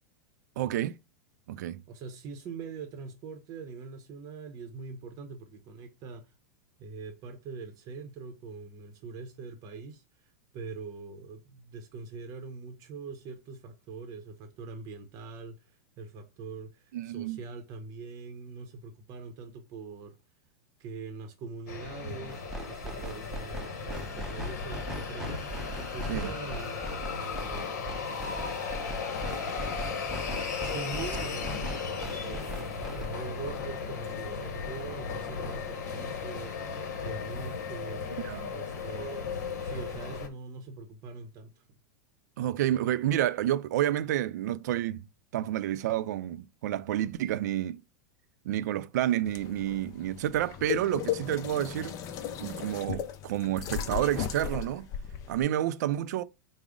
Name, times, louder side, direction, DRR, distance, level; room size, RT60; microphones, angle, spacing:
voice 1, 0.6-1.0 1.5-1.8 16.9-17.4 26.1-26.3 38.2-38.5 42.4-45.0 45.3-47.8 48.4-52.0 52.4-54.9 55.3-56.2, right 12 dB, 75° right, 0.4 m, -29 dB
voice 2, 1.9-6.3 6.8-10.0 10.5-20.2 20.8-25.4 25.9-26.9 27.1-28.7 29.4-30.0 30.6-31.5 31.8-36.6 37.0-38.2 38.5-41.8, right 4 dB, 40° right, 0.7 m, -43 dB
sound 1, 21.7-40.3, left 5 dB, 70° left, 0.9 m, -36 dB
sound 2, 22.3-33.1, equal, 5° right, 0.7 m, -39 dB
sound 3, 49.2-55.4, left 9 dB, 40° left, 0.5 m, -36 dB
4.8 x 2.0 x 3.6 m
hypercardioid pair, 130°, 9 cm